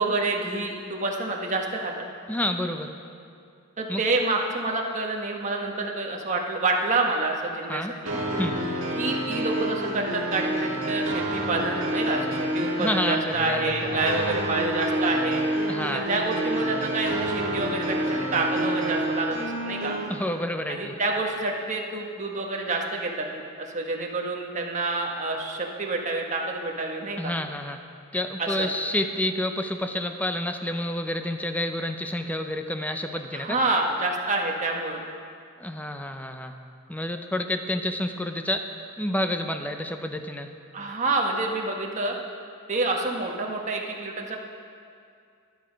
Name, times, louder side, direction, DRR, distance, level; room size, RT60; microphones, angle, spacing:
voice 1, 0.0-2.1 3.8-8.1 9.0-15.4 15.9-19.9 20.7-27.3 28.4-28.7 33.3-35.0 40.7-42.1 42.7-44.4, right 2 dB, 35° right, 0 dB, 1.3 m, -28 dB
voice 2, 2.3-2.9 3.9-4.0 7.7-7.9 8.4-8.6 12.8-13.7 14.0-14.2 15.7-16.0 20.1-21.0 27.2-27.8 28.1-33.6 35.6-36.5 36.9-38.6 39.0-40.5, left 1 dB, 5° left, 6 dB, 0.6 m, -29 dB
sound 1, 8.1-20.1, right 1 dB, 65° right, 1.9 m, -28 dB
12.0 x 11.0 x 5.2 m, 2.3 s
head